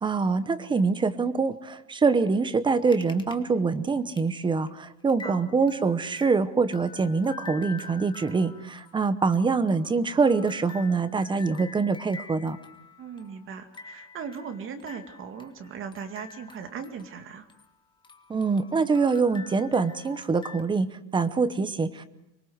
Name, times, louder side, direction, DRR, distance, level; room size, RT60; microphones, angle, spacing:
voice 1, 0.0-12.6 18.3-22.1, right 4 dB, 15° right, 13 dB, 0.9 m, -25 dB
sound 1, 2.9-3.4 3.7-3.8 4.2-4.3 4.6-4.7 5.1-17.8 18.0-20.6, left 5 dB, 10° left, 1.7 m, -47 dB
voice 2, 13.0-17.5, right 6 dB, 35° right, 7 dB, 2.2 m, -38 dB
24.5 x 22.0 x 8.0 m, 0.87 s
cardioid pair, 175°, 37 cm